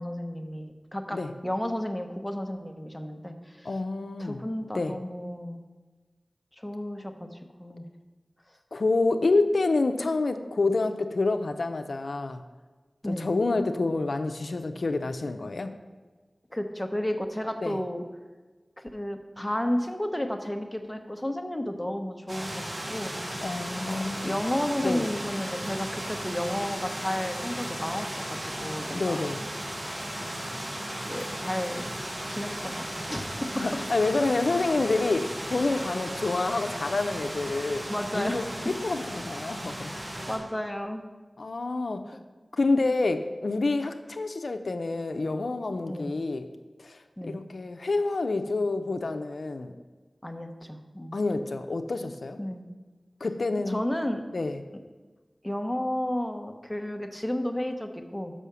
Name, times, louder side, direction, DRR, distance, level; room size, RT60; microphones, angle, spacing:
voice 1, 0.0-1.2 1.4-3.7 4.2-5.6 6.6-7.3 7.6-7.9 13.0-13.3 16.5-18.0 18.8-22.6 22.9-23.1 23.9-29.2 31.0-32.0 32.3-33.6 37.9-38.4 39.9-41.0 45.9-46.1 47.2-47.4 50.2-51.2 52.4-52.6 53.7-54.2 55.4-58.3, left 1 dB, 15° left, 5 dB, 0.9 m, -32 dB
voice 2, 3.6-4.4 4.7-5.0 8.7-12.4 13.0-15.7 17.6-17.8 23.4-24.4 24.8-25.0 28.9-29.4 33.5-37.9 38.1-39.9 41.4-42.2 42.5-46.5 46.8-49.7 51.1-52.4 53.2-53.8 54.3-54.6, left 3 dB, 85° left, 7 dB, 0.4 m, -28 dB
sound 1, 22.3-40.4, right 1 dB, 65° right, 2.8 m, -36 dB
6.2 x 5.7 x 6.8 m, 1.3 s
wide cardioid pair, 45°, 0 cm